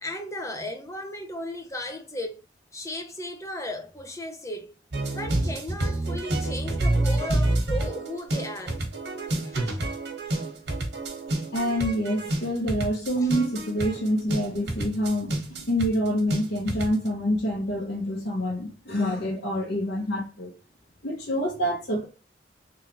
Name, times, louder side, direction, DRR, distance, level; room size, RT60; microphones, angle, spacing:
voice 1, 0.0-2.4 2.7-4.8 5.1-8.8 9.4-9.8 13.2-13.3, left 1 dB, 15° left, 0.8 m, -35 dB
sound 1, 4.9-17.1, right 1 dB, 90° right, 1.5 m, -28 dB
voice 2, 11.5-20.5 21.0-22.0, equal, 80° left, 1.3 m, -27 dB
3.7 x 3.2 x 3.1 m
head